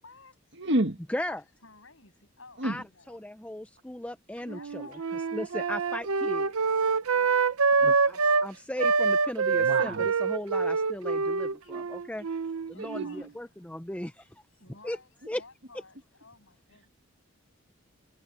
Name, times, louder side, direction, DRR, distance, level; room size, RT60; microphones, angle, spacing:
voice 1, 0.0-0.5 1.3-3.3 4.4-5.7 7.0-8.2 11.6-12.1 12.6-13.4 14.6-16.9, left 3 dB, 65° left, 7.9 m, -54 dB
voice 2, 0.6-1.0 2.6-2.8 7.8-7.9 9.6-10.1 12.8-13.2, right 1 dB, 55° right, 2.0 m, -29 dB
voice 3, 1.1-1.4 2.6-4.9 5.3-6.5 8.0-12.3 12.7-14.3 14.8-15.0 15.3-15.4, left 1 dB, 5° left, 0.5 m, -37 dB
Wind instrument woodwind instrument, 4.5-8.5 8.8-13.3, right 4 dB, 90° right, 0.7 m, -26 dB
head